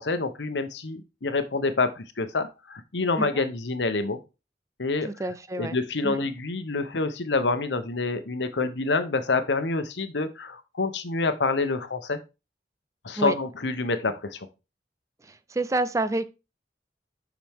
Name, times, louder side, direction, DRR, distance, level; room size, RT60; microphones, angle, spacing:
voice 1, 0.0-4.2 4.8-5.1 5.6-12.2 13.0-14.4, left 3 dB, 85° left, 1.0 m, -27 dB
voice 2, 5.0-5.8 6.0-6.2 13.2-13.4 15.2-16.3, right 2 dB, 20° right, 0.4 m, -28 dB
7.4 x 6.1 x 3.6 m
head